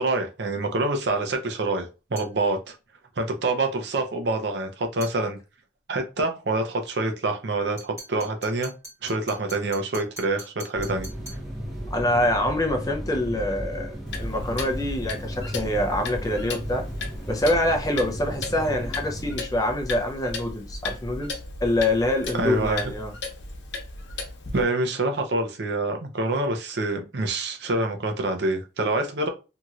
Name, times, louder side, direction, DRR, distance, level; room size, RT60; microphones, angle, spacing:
voice 1, 0.0-2.7 3.2-5.4 5.9-8.7 9.0-11.1 22.3-22.8 24.5-29.3, right 2 dB, 70° right, 0.6 m, -26 dB
sound 1, 2.2-2.4 5.0-5.2 7.8-11.5, right 1 dB, 15° right, 1.6 m, -43 dB
sound 2, 10.7-19.4, equal, ahead, 1.0 m, -35 dB
voice 2, 11.9-13.9 14.2-16.9 17.3-23.1, left 1 dB, 20° left, 0.6 m, -25 dB
Clock, 14.1-24.6, left 3 dB, 85° left, 0.8 m, -36 dB
2.9 x 2.8 x 2.4 m
head